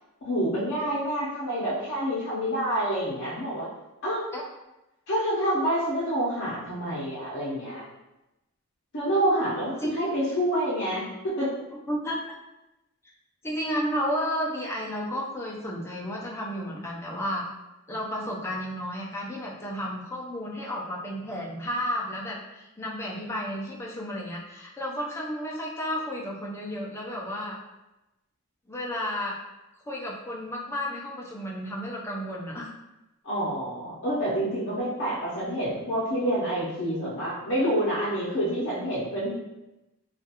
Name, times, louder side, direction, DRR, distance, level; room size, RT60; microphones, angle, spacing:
voice 1, 0.2-3.7 4.0-4.2 5.1-7.8 8.9-11.0 11.4-11.5 33.2-39.3, right 1 dB, 55° left, -8 dB, 0.6 m, -27 dB
voice 2, 11.9-12.2 13.4-17.5 17.9-27.6 28.7-29.3 29.9-32.7, equal, 10° left, -4 dB, 0.4 m, -32 dB
2.4 x 2.3 x 2.8 m, 0.97 s
head